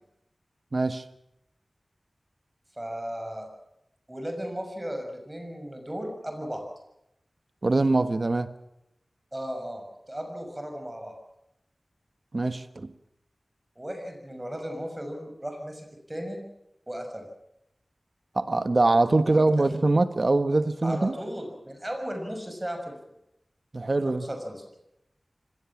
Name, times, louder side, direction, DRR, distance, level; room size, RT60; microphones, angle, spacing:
voice 1, 0.7-1.0 7.6-8.5 12.3-12.9 18.3-21.2 23.7-24.2, right 2 dB, 55° right, 1.4 m, -23 dB
voice 2, 2.8-3.5 4.1-6.6 9.3-11.2 13.8-16.4 16.9-17.3 19.2-19.6 20.8-23.0 24.0-24.6, equal, 20° right, 6.4 m, -35 dB
25.0 x 19.5 x 7.4 m
wide cardioid pair, 60°, 0 cm